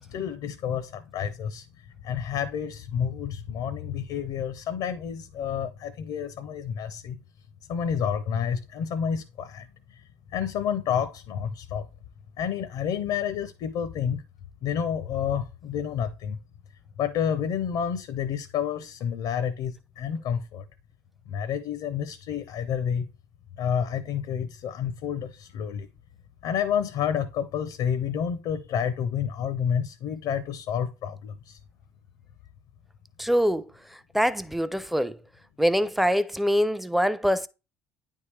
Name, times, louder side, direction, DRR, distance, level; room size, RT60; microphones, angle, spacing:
voice 1, 0.0-1.6 2.0-7.2 7.7-9.7 10.3-11.9 12.4-14.2 14.6-16.4 17.0-20.6 21.3-23.1 23.6-25.9 26.4-31.6, left 8 dB, 60° left, 0.7 m, -29 dB
voice 2, 33.2-33.7 34.1-35.2 35.6-37.5, equal, ahead, 0.6 m, -24 dB
9.5 x 3.6 x 3.3 m
hypercardioid pair, 65°, 9 cm